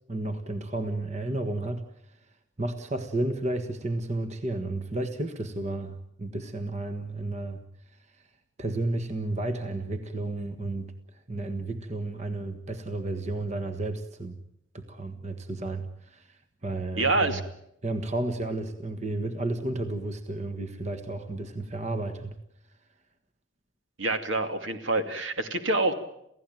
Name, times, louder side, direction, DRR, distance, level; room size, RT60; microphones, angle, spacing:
voice 1, 0.1-1.8 2.1-2.2 2.6-7.6 8.6-14.4 14.7-17.4 17.8-22.3, right 2 dB, 35° right, 8 dB, 1.6 m, -32 dB
voice 2, 17.0-17.4 24.0-25.9, right 2 dB, 70° right, 7 dB, 2.6 m, -26 dB
29.0 x 16.5 x 9.2 m, 0.79 s
head